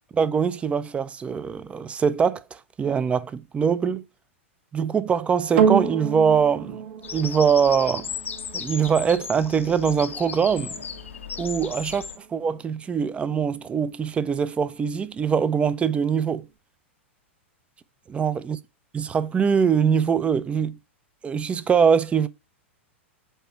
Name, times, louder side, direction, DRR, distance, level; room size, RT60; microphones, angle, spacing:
voice 1, 0.1-4.0 4.7-6.8 7.1-8.1 8.5-10.8 11.4-16.5 18.1-18.6 18.9-20.8 21.2-22.3, right 6 dB, 20° right, 0.5 m, -23 dB
sound 1, 5.6-14.1 14.9-15.0, right 7 dB, 55° right, 1.2 m, -30 dB
Bird vocalization bird call bird song, 7.0-12.2, left 6 dB, 75° left, 0.8 m, -35 dB
7.9 x 2.9 x 4.3 m
figure-of-eight pair, 95°, 7 cm